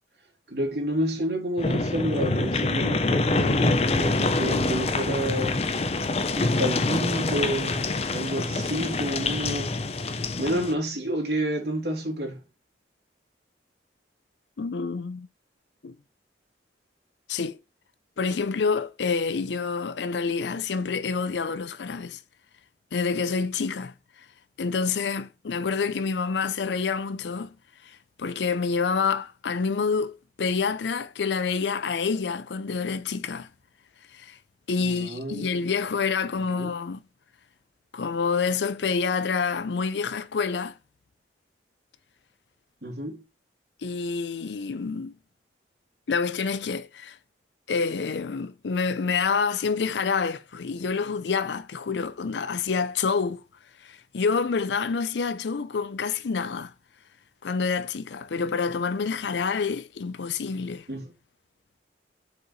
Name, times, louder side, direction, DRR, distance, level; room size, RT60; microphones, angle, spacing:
voice 1, 0.5-6.1 6.3-12.4 34.8-35.5 36.3-36.7 42.8-43.2 60.9-61.1, equal, 70° right, 2.8 m, -30 dB
sound 1, 1.6-10.7, left 2 dB, 35° left, 0.6 m, -26 dB
voice 2, 14.6-15.3 15.8-16.0 17.3-17.6 18.2-22.2 22.9-23.9 24.6-27.5 27.8-33.5 34.1-34.4 34.7-37.0 37.9-40.8 43.8-45.1 46.1-47.2 47.7-53.4 53.8-56.7 57.4-60.9, left 5 dB, 80° left, 0.5 m, -27 dB
6.6 x 5.1 x 3.1 m
head